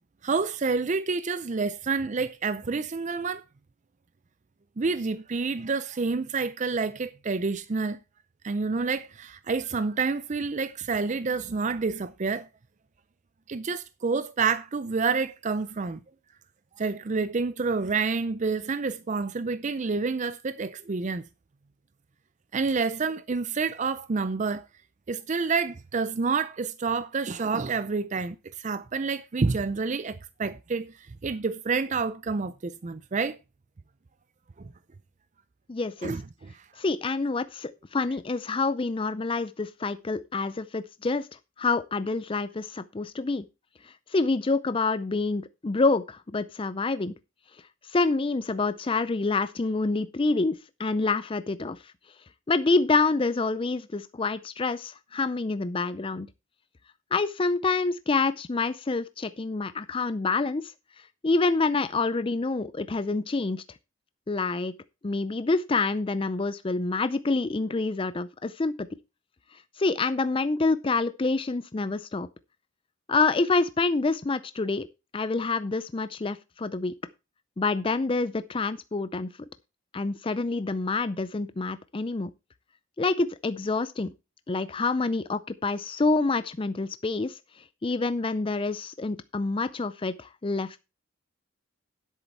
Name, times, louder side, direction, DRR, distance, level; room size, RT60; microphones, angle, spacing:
voice 1, 0.2-3.4 4.8-8.0 8.4-12.5 13.5-16.0 16.8-21.2 22.5-24.6 25.1-30.9 31.2-33.4 36.0-36.6, right 4 dB, 35° right, 0.5 m, -28 dB
voice 2, 35.7-36.1 36.8-41.3 41.6-43.4 44.1-47.1 47.9-51.8 52.5-56.3 57.1-60.7 61.2-63.6 64.3-64.7 65.0-68.9 69.8-72.3 73.1-74.9 75.1-76.9 77.6-79.3 79.9-82.3 83.0-84.1 84.5-87.4 87.8-90.8, left 3 dB, 25° left, 0.4 m, -27 dB
10.0 x 8.2 x 4.6 m
head